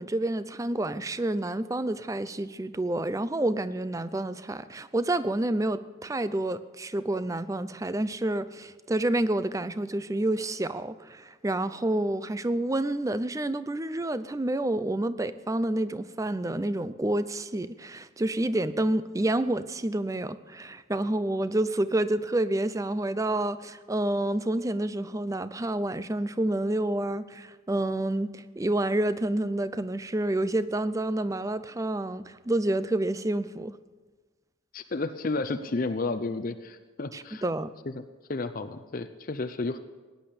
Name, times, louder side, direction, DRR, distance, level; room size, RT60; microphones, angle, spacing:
voice 1, 0.0-33.7 37.1-37.7, right 1 dB, 15° right, 14 dB, 0.4 m, -29 dB
voice 2, 34.7-37.4 37.9-38.0 38.3-39.8, left 3 dB, 40° left, 10 dB, 0.6 m, -32 dB
17.0 x 10.5 x 6.8 m, 1.4 s
head